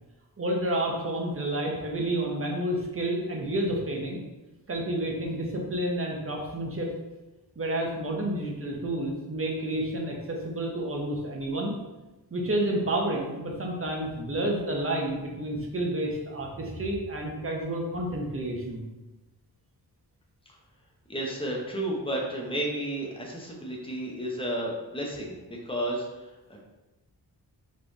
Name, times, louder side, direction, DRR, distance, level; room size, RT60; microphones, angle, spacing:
voice 1, 0.4-4.2 4.7-6.9 7.6-11.7 12.3-18.8, right 1 dB, 35° right, -1 dB, 0.8 m, -30 dB
voice 2, 21.1-26.6, right 1 dB, 15° left, -2 dB, 0.8 m, -32 dB
3.8 x 3.2 x 3.9 m, 1.1 s
wide cardioid pair, 150°, 40 cm